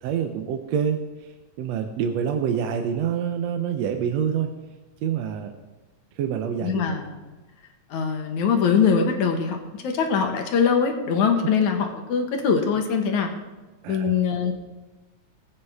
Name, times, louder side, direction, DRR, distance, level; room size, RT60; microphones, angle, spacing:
voice 1, 0.0-4.5 5.0-5.6 6.2-7.0 11.4-11.5 13.8-14.2, right 8 dB, 70° right, 5 dB, 1.8 m, -27 dB
voice 2, 6.6-7.2 7.9-13.3 13.9-14.5, left 6 dB, 75° left, 4 dB, 2.7 m, -22 dB
20.0 x 8.7 x 3.6 m, 1.2 s
omnidirectional pair, 3.5 m